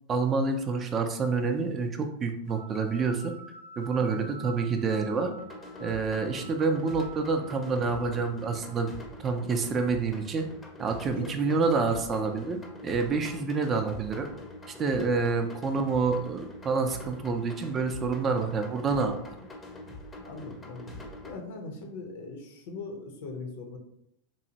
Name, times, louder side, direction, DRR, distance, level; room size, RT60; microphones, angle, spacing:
voice 1, 0.1-3.3 3.8-5.3 5.8-8.9 9.2-10.5 10.8-14.3 14.8-19.4, right 4 dB, 30° right, 6 dB, 0.4 m, -28 dB
sound 1, 2.5-8.8, right 4 dB, 75° right, 0.6 m, -48 dB
sound 2, 5.4-21.4, left 1 dB, 20° left, 0.6 m, -45 dB
voice 2, 11.2-11.6 20.2-20.9 21.2-23.8, left 3 dB, 60° left, 3 dB, 0.6 m, -40 dB
3.0 x 2.1 x 2.8 m, 0.76 s
hypercardioid pair, 95°, 0 cm